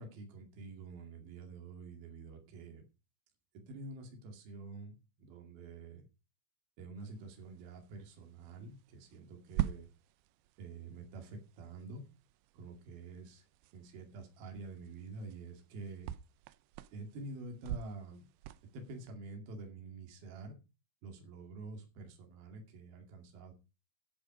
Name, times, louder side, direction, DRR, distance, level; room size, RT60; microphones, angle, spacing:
voice 1, 0.0-2.8 3.5-6.1 6.8-9.9 10.6-12.0 12.5-13.4 13.7-16.1 16.9-18.3 18.7-20.6 21.0-23.5, right 3 dB, 60° right, 3 dB, 4.0 m, -48 dB
sound 1, 7.0-19.1, right 14 dB, 80° right, 2.4 m, -45 dB
11.0 x 10.5 x 5.0 m, 0.29 s
omnidirectional pair, 5.1 m